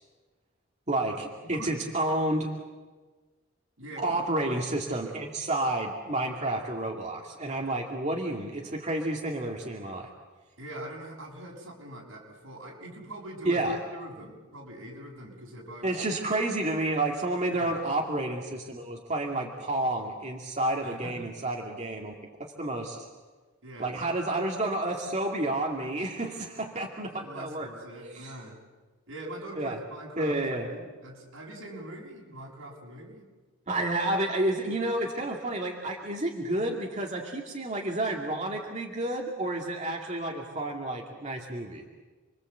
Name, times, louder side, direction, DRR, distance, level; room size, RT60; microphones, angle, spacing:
voice 1, 0.9-2.5 4.0-10.1 13.4-13.8 15.8-22.1 22.4-23.0 23.8-27.7 28.1-28.3 29.6-29.8 30.2-30.7 33.7-41.9, right 1 dB, 35° right, 0 dB, 2.5 m, -30 dB
voice 2, 3.8-4.2 10.6-13.6 13.9-15.9 17.5-17.8 20.8-21.3 23.6-24.0 27.1-28.6 29.1-30.3 30.7-33.2, right 1 dB, 80° right, -1 dB, 7.0 m, -43 dB
29.5 x 22.0 x 8.1 m, 1.3 s
head